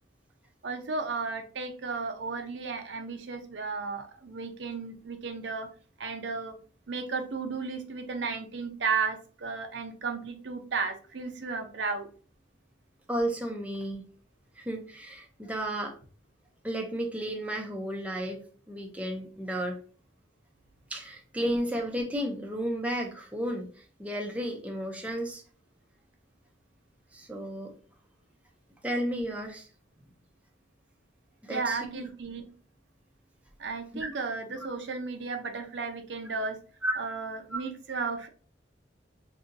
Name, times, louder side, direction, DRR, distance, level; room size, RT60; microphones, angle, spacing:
voice 1, 0.6-5.7 6.0-6.5 6.9-12.1 31.5-32.5 33.6-36.6 37.0-38.3, right 4 dB, 80° right, 5 dB, 0.6 m, -34 dB
voice 2, 13.1-14.0 14.6-15.9 16.6-19.8 20.9-23.7 24.0-25.4 27.1-27.7 28.8-29.7 31.4-31.8 33.9-34.1 36.8-37.0 37.5-37.6, right 1 dB, 10° right, 1 dB, 0.5 m, -33 dB
2.7 x 2.6 x 3.8 m, 0.40 s
head